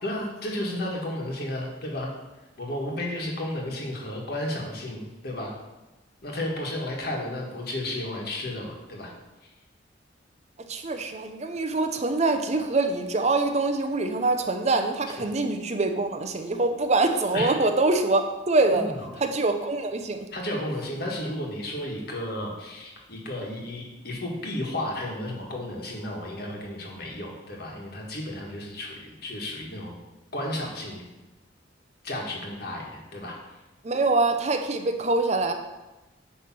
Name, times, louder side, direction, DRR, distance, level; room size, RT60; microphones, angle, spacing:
voice 1, 0.0-2.1 2.6-5.5 6.2-9.1 9.4-9.5 15.2-15.3 17.3-17.5 18.7-19.1 20.3-29.9 30.3-31.0 32.0-33.3, left 1 dB, 55° left, -1 dB, 1.6 m, -33 dB
voice 2, 10.7-18.8 19.2-20.2 33.8-35.5, right 3 dB, 35° right, 6 dB, 0.6 m, -24 dB
8.8 x 3.3 x 6.0 m, 1.1 s
head